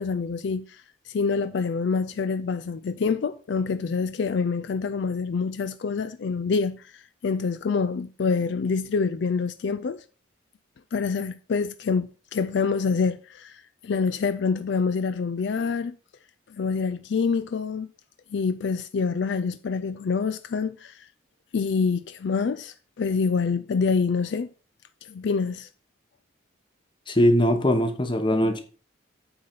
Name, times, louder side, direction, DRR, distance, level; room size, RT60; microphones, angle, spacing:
voice 1, 0.0-10.0 10.9-15.9 16.5-17.9 18.3-21.1 21.5-24.5 25.0-25.7, left 5 dB, 65° left, 0.4 m, -26 dB
voice 2, 27.1-28.6, equal, 25° left, 1.0 m, -21 dB
8.7 x 4.0 x 6.5 m
head